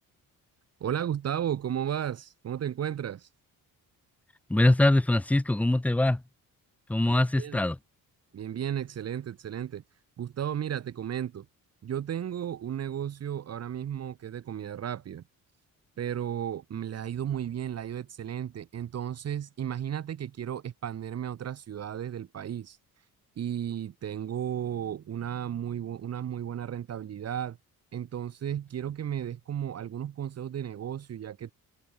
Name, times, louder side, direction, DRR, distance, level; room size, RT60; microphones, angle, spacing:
voice 1, 0.8-3.3 7.4-7.6 8.3-9.8 10.2-11.5 11.8-15.2 16.0-22.8 23.4-27.6 27.9-31.5, right 9 dB, 45° right, 2.1 m, -34 dB
voice 2, 4.5-6.2 6.9-7.8, left 1 dB, 5° left, 0.5 m, -23 dB
cardioid pair, 180°, 35 cm